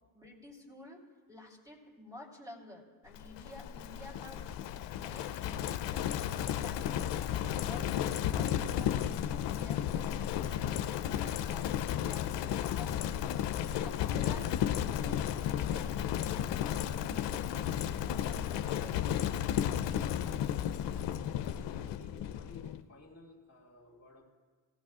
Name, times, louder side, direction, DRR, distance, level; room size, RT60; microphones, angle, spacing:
voice 1, 0.1-1.0 1.3-4.6 4.9-9.0 9.5-13.2 13.6-16.6 17.0-19.1, left 1 dB, 10° right, -1 dB, 3.3 m, -51 dB
Livestock farm animals working animals, 3.1-22.8, left 10 dB, 65° left, 0.7 m, -33 dB
voice 2, 21.0-21.4 21.7-24.3, left 2 dB, 35° left, -4 dB, 2.3 m, -56 dB
18.0 x 15.0 x 2.5 m, 1.5 s
supercardioid pair, 60°, 47 cm